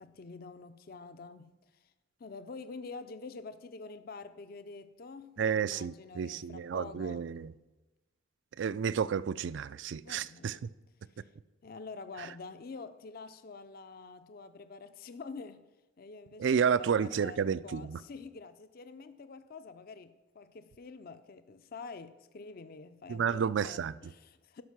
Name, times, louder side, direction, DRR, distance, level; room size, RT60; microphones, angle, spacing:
voice 1, 0.0-1.9 2.2-7.3 10.0-10.7 11.2-11.3 11.6-15.7 16.0-24.6, left 4 dB, 50° left, 0.4 m, -47 dB
voice 2, 5.4-7.5 8.6-10.7 16.4-18.0 23.1-23.9, right 7 dB, 65° right, 0.3 m, -31 dB
12.5 x 5.5 x 5.9 m
head